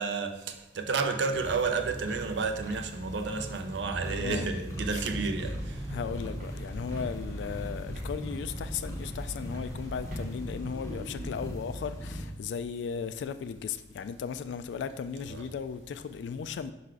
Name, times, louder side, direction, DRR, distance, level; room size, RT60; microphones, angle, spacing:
voice 1, 0.0-5.8 15.3-15.4, right 4 dB, 85° right, 0.6 m, -31 dB
sound 1, 1.3-12.3, equal, 15° left, 0.6 m, -39 dB
sound 2, 5.6-11.3, equal, 45° right, 1.0 m, -43 dB
voice 2, 5.9-16.7, left 6 dB, 85° left, 0.3 m, -36 dB
5.5 x 4.0 x 4.7 m
head